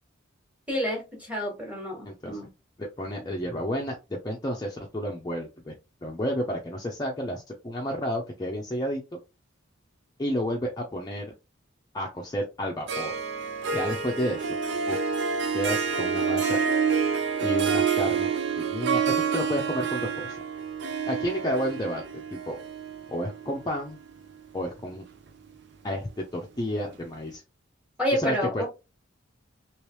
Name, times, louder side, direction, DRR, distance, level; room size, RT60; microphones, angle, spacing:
voice 1, 0.7-2.5 28.0-28.7, equal, 5° right, -2 dB, 1.5 m, -29 dB
voice 2, 2.0-2.4 2.8-4.0 4.2-5.8 6.0-9.0 10.2-11.3 11.9-13.1 13.7-14.5 14.9-15.0 15.5-16.6 17.4-18.3 18.6-20.4 21.1-22.0 22.3-22.6 23.1-24.0 24.5-25.0 25.8-27.4 28.1-28.6, equal, 20° left, 0 dB, 0.5 m, -31 dB
Harp, 12.9-24.3, right 6 dB, 55° right, 0.5 m, -28 dB
3.2 x 3.0 x 3.1 m, 0.26 s
head